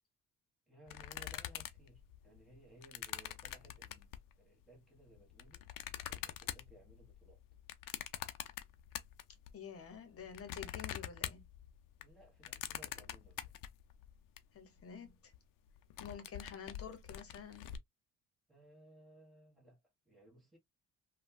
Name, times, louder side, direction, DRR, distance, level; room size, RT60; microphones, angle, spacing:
voice 1, 0.7-4.1 4.4-5.7 6.1-7.4 12.0-13.5 18.5-19.8 20.0-20.6, right 1 dB, ahead, 1.4 m, -61 dB
sound 1, 0.9-4.3 5.0-9.5 9.8-14.4 14.8-14.9 15.1-15.4 15.7-17.8, left 12 dB, 75° left, 0.5 m, -45 dB
voice 2, 9.5-11.4 14.5-15.3 16.0-17.7, left 7 dB, 45° left, 1.0 m, -49 dB
3.2 x 2.3 x 2.2 m
cardioid pair, 125°, 32 cm